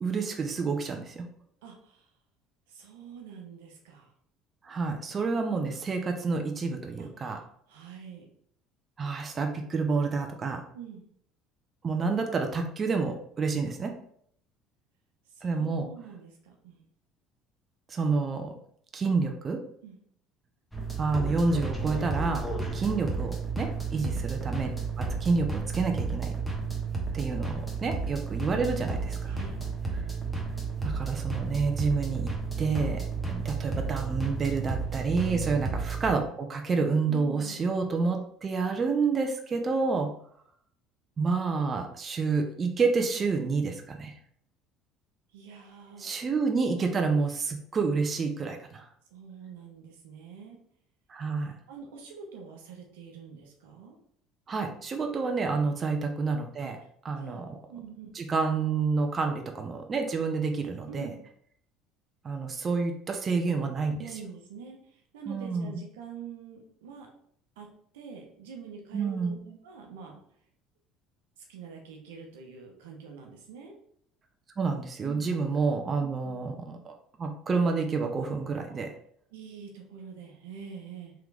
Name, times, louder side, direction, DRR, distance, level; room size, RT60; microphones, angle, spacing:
voice 1, 0.0-1.2 4.6-7.4 9.0-10.6 11.8-13.9 15.4-15.9 17.9-18.5 18.9-19.6 21.0-22.4 22.7-26.3 27.1-29.4 30.8-32.3 32.6-40.1 41.2-44.1 46.0-48.9 51.1-51.6 54.5-56.8 57.0-57.6 58.1-61.1 62.2-64.0 65.3-65.8 68.9-69.3 74.6-76.9 77.2-78.9, right 4 dB, 35° right, 4 dB, 0.7 m, -29 dB
voice 2, 1.6-2.1 2.7-4.1 7.0-7.4 7.7-8.3 10.7-11.0 15.3-16.8 19.8-20.0 24.0-24.2 29.2-29.6 37.1-37.7 45.3-46.2 49.1-50.6 51.7-54.0 55.6-55.7 56.6-56.7 57.2-57.4 57.7-58.1 60.9-61.2 64.0-67.1 67.6-67.7 67.9-70.2 71.4-73.8 75.0-75.2 78.7-78.8 79.3-81.1, right 6 dB, 90° right, 1 dB, 0.9 m, -45 dB
sound 1, 20.7-36.1, right 4 dB, 5° left, 1.2 m, -32 dB
3.8 x 3.0 x 3.4 m, 0.65 s
supercardioid pair, 85°, 0 cm